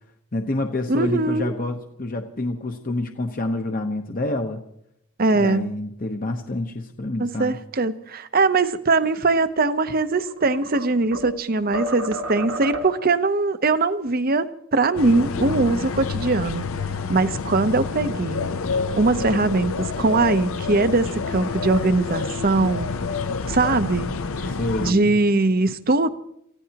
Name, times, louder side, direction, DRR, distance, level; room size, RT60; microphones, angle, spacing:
voice 1, 0.3-4.6 5.3-7.6 24.5-25.2, left 2 dB, 40° left, 4 dB, 0.9 m, -27 dB
voice 2, 0.9-1.5 5.2-5.7 7.2-14.5 14.7-16.6 17.1-18.5 18.9-22.9 23.5-24.1 24.8-26.1, right 3 dB, 40° right, 12 dB, 0.8 m, -21 dB
sound 1, 10.0-11.4 11.7-13.1, right 1 dB, 70° right, 1.6 m, -31 dB
sound 2, 15.0-24.9, left 4 dB, 65° left, 0.7 m, -28 dB
28.5 x 15.5 x 2.9 m, 0.77 s
head